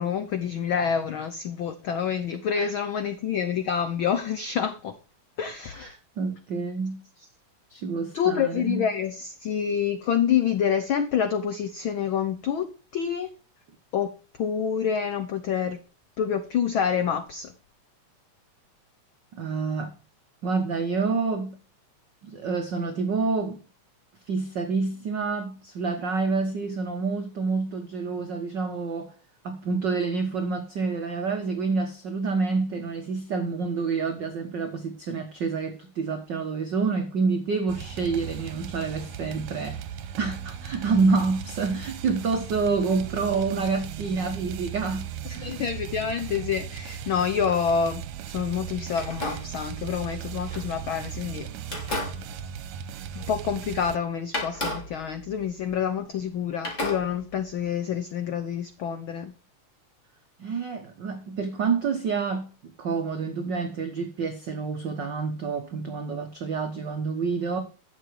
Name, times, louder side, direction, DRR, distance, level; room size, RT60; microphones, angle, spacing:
voice 1, 0.0-4.9 5.4-5.9 8.1-13.3 13.9-14.1 14.4-15.8 16.2-17.5 45.3-51.5 53.1-59.3, left 7 dB, 75° left, 1.1 m, -27 dB
voice 2, 5.7-7.0 7.7-8.8 19.3-19.9 20.4-21.5 22.2-23.6 24.3-29.1 29.4-39.8 40.2-45.6 60.4-62.5 62.8-67.6, right 4 dB, 60° right, 1.2 m, -28 dB
sound 1, 37.7-54.0, right 9 dB, 85° right, 2.2 m, -37 dB
sound 2, 46.8-48.0 48.9-51.2 51.6-53.6 53.8-53.9 54.3-56.3 56.6-57.6, left 1 dB, 25° left, 3.6 m, -36 dB
11.5 x 7.2 x 4.7 m
omnidirectional pair, 3.3 m